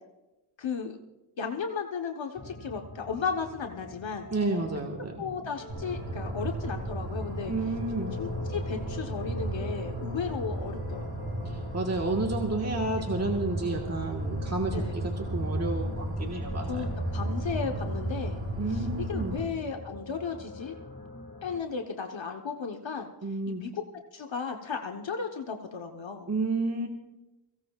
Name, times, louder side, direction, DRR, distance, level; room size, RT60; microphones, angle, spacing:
voice 1, 0.6-1.0 1.4-4.3 5.2-7.5 8.2-11.5 14.7-15.0 16.7-18.4 18.7-20.7 21.4-23.1 23.5-23.8 24.1-26.3, left 6 dB, 70° left, 3 dB, 1.1 m, -35 dB
sound 1, 2.4-21.6, left 3 dB, 35° left, 1.7 m, -43 dB
voice 2, 4.3-5.3 7.5-8.1 11.4-16.8 18.6-19.4 23.2-23.6 26.3-26.9, right 2 dB, 35° right, 1 dB, 1.5 m, -31 dB
sound 2, 5.7-19.4, right 1 dB, 85° right, 5.5 m, -34 dB
23.0 x 16.5 x 2.4 m, 1.0 s
wide cardioid pair, 80°, 47 cm